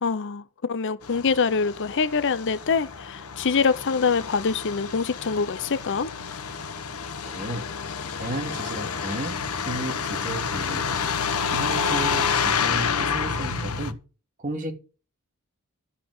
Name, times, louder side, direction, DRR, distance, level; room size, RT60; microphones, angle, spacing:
voice 1, 0.0-6.1, left 5 dB, 55° left, 0.7 m, -25 dB
Truck, 1.0-13.9, left 6 dB, 75° left, 1.1 m, -29 dB
voice 2, 7.2-7.6 8.2-9.4 9.7-11.1 11.5-14.0 14.4-14.7, right 1 dB, 35° right, 2.5 m, -33 dB
12.5 x 5.8 x 7.9 m
head